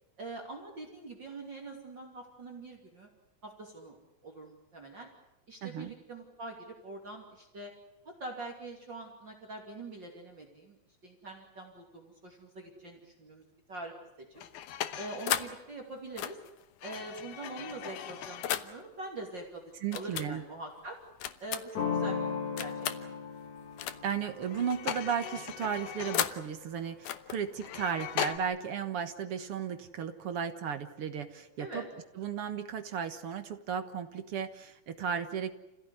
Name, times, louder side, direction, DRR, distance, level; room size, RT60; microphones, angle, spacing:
voice 1, 0.2-3.1 3.4-5.1 5.5-7.7 8.0-13.9 14.3-14.4 15.0-16.4 16.8-21.0 21.4-22.2 22.6-22.7 23.0-23.1 31.6-31.9, right 2 dB, 35° right, 1 dB, 3.2 m, -44 dB
voice 2, 5.6-5.9 19.8-20.4 24.0-31.8 32.2-35.5, right 7 dB, 55° right, 9 dB, 2.0 m, -35 dB
sound 1, 14.4-15.6 16.2-18.8 19.9-20.3 21.2-21.9 22.6-23.0 23.8-24.2 24.4-26.5 27.0-28.4, left 11 dB, 90° left, 2.6 m, -36 dB
sound 2, 21.7-27.3, left 6 dB, 60° left, 4.4 m, -38 dB
29.0 x 16.5 x 9.6 m, 0.93 s
omnidirectional pair, 3.6 m